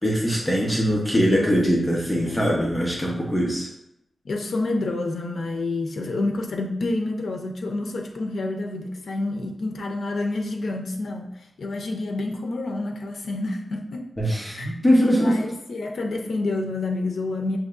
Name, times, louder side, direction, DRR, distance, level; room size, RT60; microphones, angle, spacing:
voice 1, 0.0-3.7 14.2-15.4, equal, 20° left, -3 dB, 0.8 m, -22 dB
voice 2, 1.3-1.8 2.3-2.4 4.3-14.1 14.5-14.7 15.1-17.6, left 2 dB, 90° left, 3 dB, 0.5 m, -28 dB
6.2 x 2.9 x 2.4 m, 0.80 s
wide cardioid pair, 95°, 0 cm